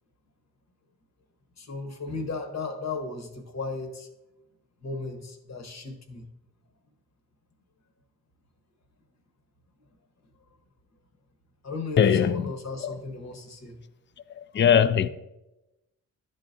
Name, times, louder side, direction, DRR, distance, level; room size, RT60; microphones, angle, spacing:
voice 1, 1.6-4.1 4.8-6.3 11.6-13.8, left 3 dB, 50° left, 1.2 m, -35 dB
voice 2, 12.0-12.3 12.8-12.9 14.6-15.1, left 8 dB, 35° left, 0.5 m, -19 dB
11.0 x 3.9 x 2.6 m
supercardioid pair, 45°, 34 cm